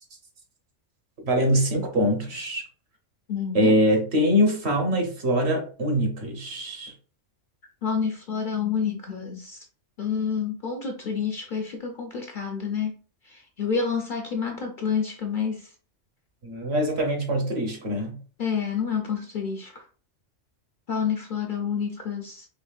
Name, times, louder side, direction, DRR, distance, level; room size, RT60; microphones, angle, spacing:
voice 1, 1.2-2.6 3.5-6.9 16.4-18.2, equal, 60° right, 3 dB, 1.3 m, -23 dB
voice 2, 3.3-3.8 7.8-9.6 10.0-12.9 13.2-15.7 18.4-19.8 20.9-22.5, left 6 dB, 55° left, 4 dB, 0.6 m, -28 dB
4.4 x 2.9 x 2.4 m, 0.40 s
omnidirectional pair, 1.2 m